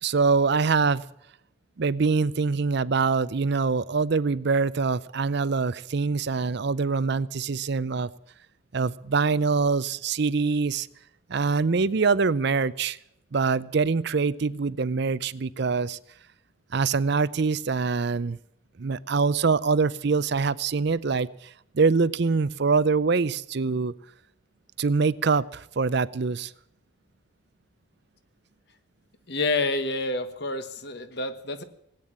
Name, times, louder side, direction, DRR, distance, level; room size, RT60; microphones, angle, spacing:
voice 1, 0.0-1.0 1.8-8.1 8.7-10.9 11.3-13.0 13.3-16.0 16.7-18.4 18.8-23.9 24.8-26.5, right 4 dB, 55° right, 18 dB, 0.5 m, -24 dB
voice 2, 29.3-31.6, left 3 dB, 50° left, 11 dB, 1.3 m, -28 dB
18.0 x 9.1 x 8.8 m, 0.79 s
head